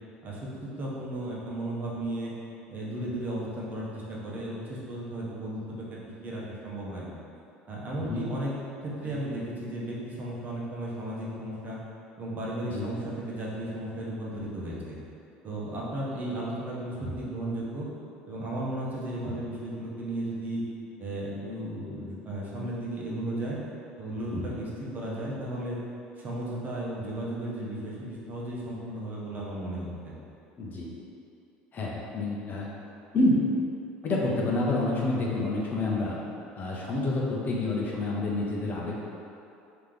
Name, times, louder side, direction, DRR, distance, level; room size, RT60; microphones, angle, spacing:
voice 1, 0.2-2.3 2.7-7.1 7.7-8.5 8.8-11.8 12.2-15.0 15.4-17.9 18.3-20.6 21.0-23.6 24.0-25.8 26.2-30.2, right 1 dB, 40° right, -5 dB, 1.0 m, -35 dB
voice 2, 30.6-30.9 31.7-32.7 33.1-33.4 34.0-36.2 36.6-39.0, left 2 dB, 40° left, -3 dB, 0.8 m, -28 dB
3.2 x 2.9 x 3.8 m, 2.6 s
supercardioid pair, 85°, 4 cm